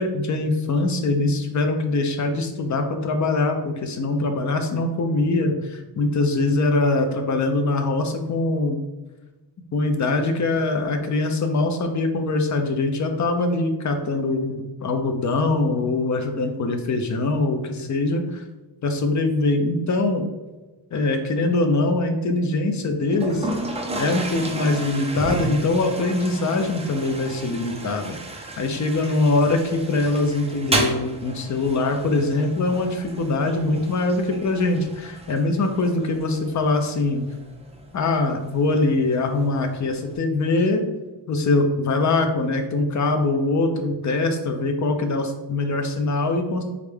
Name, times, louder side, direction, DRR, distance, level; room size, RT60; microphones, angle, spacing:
voice 1, 0.0-8.8 9.7-18.4 18.8-20.3 20.9-23.5 24.0-28.2 28.6-37.2 37.9-40.8 41.3-46.6, left 2 dB, 40° left, 5 dB, 0.5 m, -23 dB
Toilet flush, 23.1-40.1, right 2 dB, 15° right, 0.4 m, -33 dB
3.7 x 3.5 x 3.3 m, 1.1 s
wide cardioid pair, 170°, 46 cm